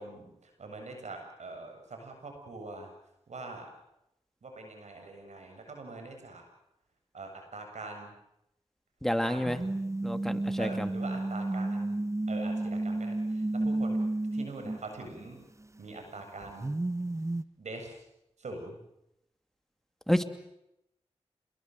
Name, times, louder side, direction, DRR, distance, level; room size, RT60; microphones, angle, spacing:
voice 1, 0.0-2.9 3.3-3.7 4.4-6.4 7.1-8.1 9.2-9.7 10.6-12.0 12.3-14.1 14.3-15.4 15.8-16.8 17.6-18.0 18.4-18.8, right 3 dB, 80° right, 4 dB, 7.6 m, -43 dB
voice 2, 9.0-9.6 10.0-10.9 20.1-20.2, equal, 5° left, 8 dB, 2.7 m, -29 dB
sound 1, 9.5-15.3 16.4-17.4, right 2 dB, 25° right, 1.1 m, -32 dB
27.0 x 22.0 x 7.9 m, 0.83 s
cardioid pair, 40°, 12 cm